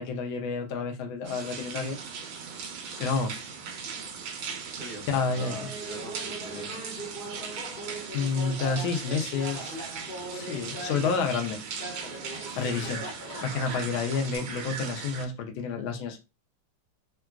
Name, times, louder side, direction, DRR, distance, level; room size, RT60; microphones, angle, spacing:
voice 1, 0.0-2.0 3.0-3.4 5.1-5.7 8.1-9.8 10.3-11.6 12.5-13.1 13.4-16.2, left 5 dB, 75° left, 1.4 m, -29 dB
sound 1, 1.2-15.3, right 6 dB, 75° right, 1.4 m, -39 dB
voice 2, 4.8-7.1 12.5-13.0, left 1 dB, 30° right, 1.1 m, -44 dB
Laughter, 5.4-11.3 11.8-14.4, right 1 dB, 30° left, 1.0 m, -40 dB
3.7 x 2.3 x 2.3 m
omnidirectional pair, 2.3 m